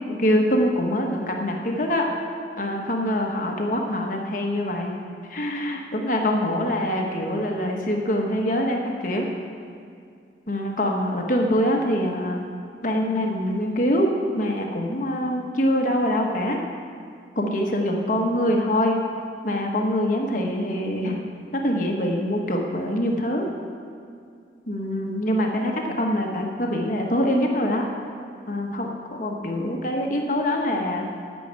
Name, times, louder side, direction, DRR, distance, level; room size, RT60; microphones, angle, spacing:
voice 1, 0.0-2.0 2.6-4.9 5.3-9.3 10.5-12.4 12.8-16.6 17.4-19.0 19.4-21.2 21.6-23.5 24.7-27.9 28.5-31.1, equal, 45° left, 1 dB, 1.2 m, -24 dB
12.5 x 6.4 x 8.8 m, 2.3 s
head